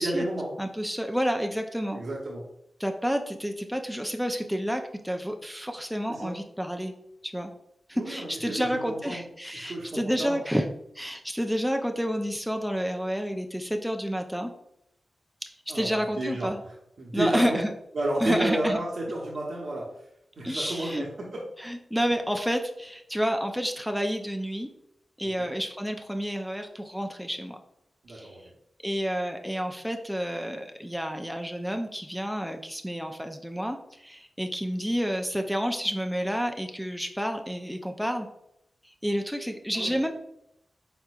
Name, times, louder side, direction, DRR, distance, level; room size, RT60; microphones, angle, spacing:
voice 1, 0.0-0.5 1.9-2.4 6.1-6.3 7.9-9.2 9.5-10.4 15.7-17.6 17.9-19.9 20.4-21.4 25.2-25.5 28.0-28.4 39.7-39.9, right 1 dB, 75° right, -4 dB, 0.8 m, -31 dB
voice 2, 0.6-2.0 2.8-6.9 7.2-7.5 7.9-10.7 10.9-14.5 15.7-16.6 17.1-17.7 18.2-18.8 20.4-21.1 21.6-24.7 25.2-27.6 28.1-28.4 28.8-38.3 39.0-40.1, equal, ahead, 4 dB, 0.4 m, -29 dB
4.3 x 3.6 x 2.3 m, 0.79 s
cardioid pair, 45°, 0 cm